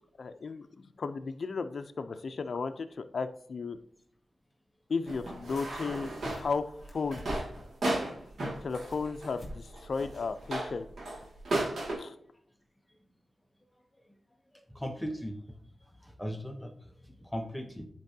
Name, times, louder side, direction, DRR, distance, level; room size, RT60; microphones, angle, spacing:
voice 1, 0.2-3.8 4.9-7.3 8.6-10.9 12.0-12.1, left 4 dB, 65° left, 8 dB, 0.5 m, -35 dB
sound 1, 5.1-11.9, right 1 dB, 80° right, 2.1 m, -34 dB
sound 2, 5.4-5.5 5.8-6.6 6.9-7.7 8.2-9.1 9.4-9.6 9.9-10.0 10.6-10.7, left 1 dB, 35° left, 2.4 m, -45 dB
voice 2, 14.7-15.4 16.0-16.7 17.2-17.9, equal, 5° left, 5 dB, 0.8 m, -37 dB
9.5 x 4.6 x 2.8 m, 0.68 s
wide cardioid pair, 85°, 0 cm